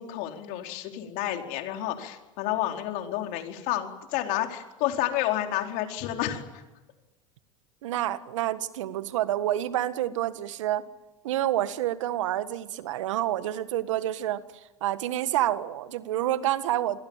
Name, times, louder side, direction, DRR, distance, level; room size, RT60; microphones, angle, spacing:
voice 1, 0.0-6.6, left 13 dB, 60° left, 4 dB, 4.4 m, -30 dB
voice 2, 7.8-10.8 11.2-14.4 14.8-17.0, right 13 dB, 75° right, 13 dB, 1.6 m, -28 dB
28.5 x 22.5 x 7.5 m, 1.1 s
hypercardioid pair, 90°, 16 cm